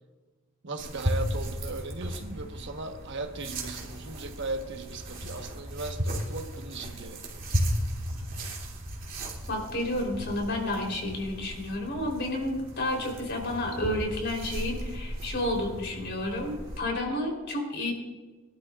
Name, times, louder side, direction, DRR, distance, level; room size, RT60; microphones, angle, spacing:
voice 1, 0.6-7.4, right 3 dB, 60° right, 5 dB, 1.2 m, -37 dB
sound 1, 0.8-16.8, equal, 40° right, 2.7 m, -35 dB
voice 2, 9.5-17.9, left 1 dB, 55° left, 0 dB, 3.6 m, -31 dB
23.0 x 12.0 x 2.4 m, 1.2 s
head